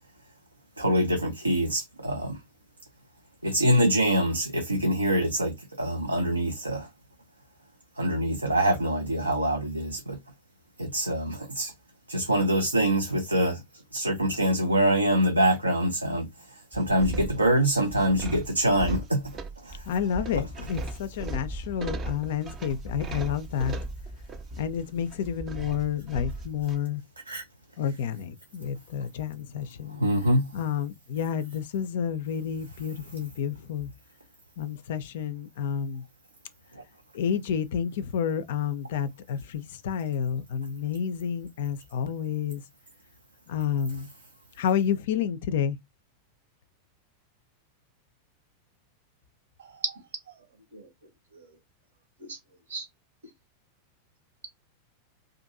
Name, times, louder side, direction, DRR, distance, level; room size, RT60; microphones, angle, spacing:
voice 1, 0.8-2.4 3.4-6.9 8.0-10.2 10.8-11.7 12.1-13.6 13.9-16.3 16.7-19.2 19.6-19.8 20.4-20.5 27.3-27.4 30.0-30.5 36.8-36.9, right 1 dB, 80° right, 0.4 m, -25 dB
sound 1, 16.7-26.8, right 1 dB, 25° right, 0.5 m, -37 dB
voice 2, 19.9-23.8 24.6-27.0 27.8-30.0 30.5-33.9 34.6-36.0 37.1-42.6 43.5-44.1 44.6-45.8, left 8 dB, 55° left, 0.3 m, -30 dB
voice 3, 49.6-50.4 50.7-50.9 51.3-51.6 52.2-52.4 52.7-52.9, right 4 dB, 65° right, 0.9 m, -37 dB
2.6 x 2.5 x 2.5 m
figure-of-eight pair, 90°, 0 cm